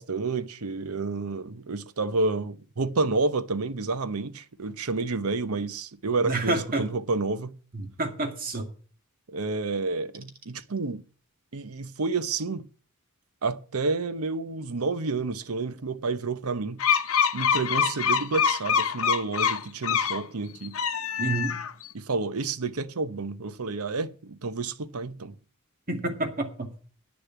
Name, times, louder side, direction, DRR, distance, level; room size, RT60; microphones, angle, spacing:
voice 1, 0.0-7.5 9.3-11.0 11.5-12.7 13.4-16.8 17.3-20.8 21.9-25.3, right 3 dB, 80° right, 0.8 m, -30 dB
voice 2, 6.2-6.9 7.7-8.7 21.2-21.6 25.9-26.7, right 2 dB, 40° right, 2.2 m, -29 dB
sound 1, 16.8-20.2 20.6-21.9, left 7 dB, 70° left, 0.8 m, -25 dB
9.9 x 6.8 x 8.3 m
head